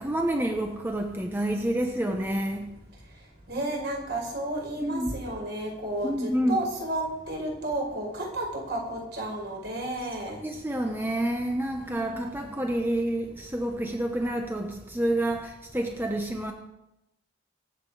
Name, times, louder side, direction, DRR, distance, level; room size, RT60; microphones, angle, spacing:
voice 1, 0.0-2.7 4.8-5.1 6.0-6.7 10.4-16.5, right 1 dB, 10° right, 1.1 m, -28 dB
voice 2, 3.5-10.4 11.8-12.5, right 1 dB, 60° right, 5.0 m, -32 dB
25.0 x 8.5 x 4.9 m
head